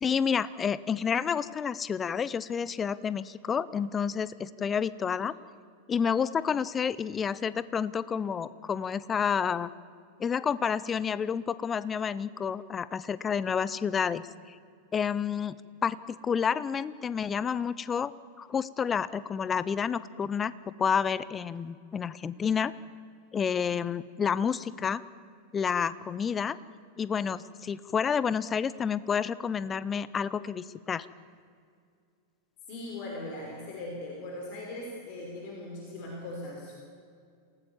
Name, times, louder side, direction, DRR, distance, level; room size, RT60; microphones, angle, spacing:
voice 1, 0.0-5.3 5.9-9.7 10.2-14.3 14.9-15.6 15.8-18.1 18.4-22.7 23.3-25.0 25.5-26.6 27.0-31.1, left 7 dB, 20° left, 17 dB, 0.7 m, -29 dB
voice 2, 32.7-36.7, left 1 dB, 45° left, -1 dB, 5.1 m, -39 dB
27.5 x 18.0 x 7.3 m, 2.2 s
figure-of-eight pair, 90°, 0 cm